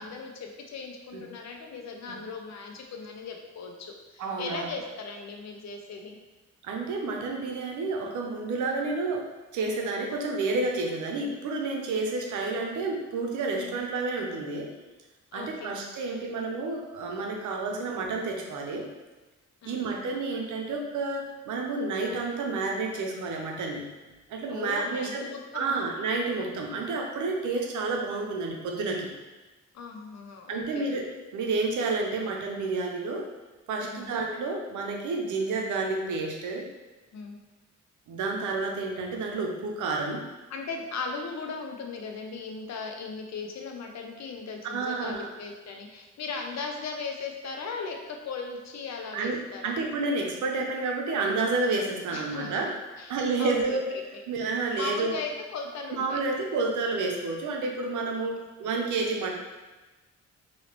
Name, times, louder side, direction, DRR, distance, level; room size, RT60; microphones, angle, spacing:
voice 1, 0.0-6.2 13.6-13.8 15.3-15.8 17.7-17.9 19.6-19.9 24.5-25.9 26.7-26.8 29.7-30.9 33.8-34.1 37.1-37.4 40.5-49.7 52.1-53.1 53.4-54.2 54.7-56.2 58.2-58.3, left 4 dB, 65° left, 2 dB, 0.6 m, -38 dB
voice 2, 4.2-4.7 6.6-9.3 9.5-14.7 15.3-18.9 19.6-23.8 24.3-25.3 25.5-29.1 30.5-31.1 31.3-33.3 33.7-36.7 38.1-40.2 44.6-45.3 49.1-52.7 53.1-53.9 54.3-55.2 55.9-59.3, right 3 dB, 85° right, 1 dB, 0.6 m, -30 dB
3.1 x 2.7 x 2.9 m, 1.2 s
cardioid pair, 70°, 29 cm